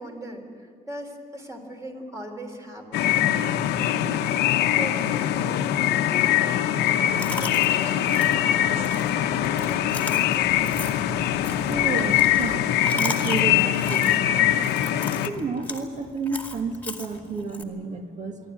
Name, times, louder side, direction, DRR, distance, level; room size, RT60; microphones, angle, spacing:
voice 1, 0.0-9.2 9.7-10.2, right 1 dB, 20° right, 3 dB, 3.5 m, -40 dB
sound 1, 2.9-15.3, left 11 dB, 85° left, 1.0 m, -22 dB
Chewing mastication, 7.2-17.6, left 2 dB, 10° left, 2.3 m, -38 dB
voice 2, 11.7-12.6 12.9-14.2 15.3-18.4, right 4 dB, 45° right, 6 dB, 1.9 m, -31 dB
26.0 x 12.0 x 9.9 m, 2.3 s
cardioid pair, 110°, 17 cm